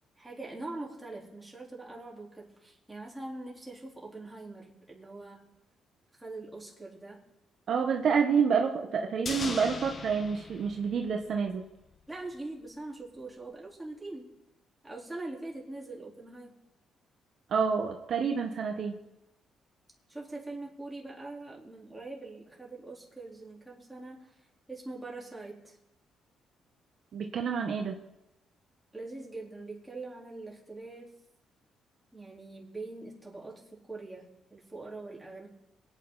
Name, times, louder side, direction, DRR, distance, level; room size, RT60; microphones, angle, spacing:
voice 1, 0.2-5.5 6.1-7.2 12.1-14.3 14.8-16.6 20.1-24.4 24.7-25.8 28.9-31.1 32.1-35.5, right 2 dB, 10° right, -3 dB, 3.9 m, -43 dB
voice 2, 7.7-11.6 17.5-18.9 27.1-28.0, right 6 dB, 60° right, 3 dB, 1.2 m, -28 dB
sound 1, 9.3-11.6 11.9-12.0, left 4 dB, 45° left, 1.2 m, -40 dB
22.5 x 9.3 x 4.0 m, 0.91 s
cardioid pair, 90°, 0 cm